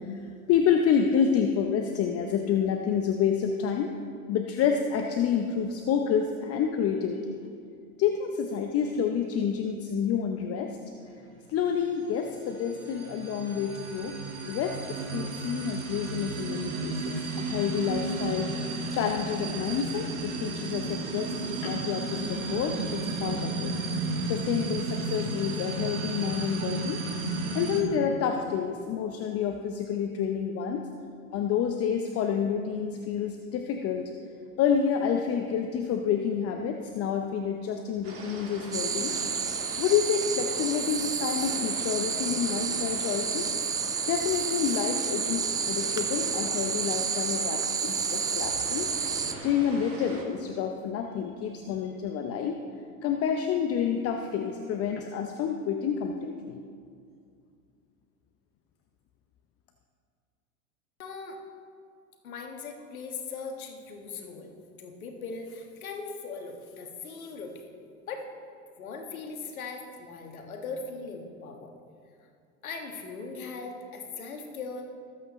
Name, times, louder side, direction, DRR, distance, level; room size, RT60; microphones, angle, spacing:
voice 1, 0.5-3.9 4.3-7.4 8.0-10.7 11.5-14.1 14.5-18.5 18.9-23.7 24.3-27.0 27.5-30.8 31.3-34.0 34.6-39.1 39.8-43.5 44.1-48.9 49.4-52.6 53.0-56.6, left 7 dB, 35° left, 4 dB, 0.8 m, -28 dB
sound 1, 12.1-27.8, right 3 dB, 80° right, 1.7 m, -33 dB
sound 2, 38.0-50.2, right 2 dB, 30° right, 2.5 m, -41 dB
sound 3, 38.7-49.3, right 6 dB, 10° right, 0.3 m, -30 dB
voice 2, 61.0-61.4 62.2-64.5 64.8-67.5 68.1-68.2 68.8-71.7 72.6-74.9, left 4 dB, 75° left, 3 dB, 1.7 m, -39 dB
19.5 x 8.3 x 3.1 m, 2.3 s
hypercardioid pair, 90°, 42 cm